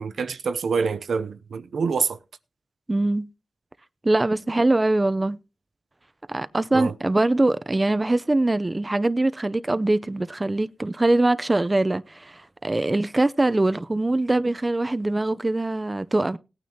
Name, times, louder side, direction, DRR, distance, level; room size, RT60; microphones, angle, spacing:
voice 1, 0.0-2.2 6.7-6.9, right 5 dB, 80° right, 0.6 m, -26 dB
voice 2, 2.9-3.3 4.0-5.4 6.3-16.4, right 2 dB, 30° right, 0.6 m, -23 dB
18.0 x 9.2 x 2.9 m
cardioid pair, 50°, 0 cm